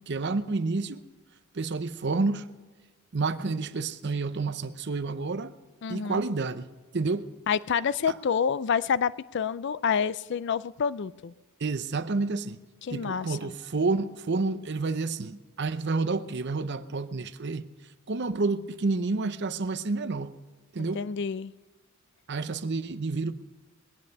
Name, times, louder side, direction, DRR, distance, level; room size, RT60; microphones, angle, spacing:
voice 1, 0.1-1.0 1.5-2.5 3.1-5.5 5.9-6.7 6.9-7.3 8.1-8.2 11.6-12.6 12.9-17.7 18.1-20.4 20.7-21.0 22.3-23.3, right 3 dB, 50° right, 0.7 m, -29 dB
voice 2, 5.8-6.2 7.5-11.3 12.8-13.6 20.8-21.5, left 6 dB, 50° left, 0.4 m, -28 dB
21.5 x 8.8 x 5.3 m
head